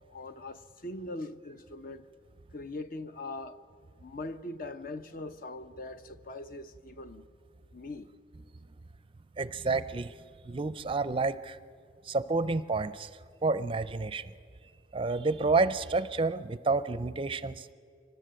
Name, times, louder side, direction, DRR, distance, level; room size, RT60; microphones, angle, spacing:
voice 1, 0.1-2.0 2.5-3.6 4.0-7.2 7.7-8.1, left 2 dB, 55° left, 0.8 m, -41 dB
voice 2, 9.4-10.1 10.5-11.6 12.1-13.1 13.4-14.3 14.9-17.7, right 3 dB, 30° right, 0.5 m, -29 dB
24.5 x 19.0 x 7.6 m
head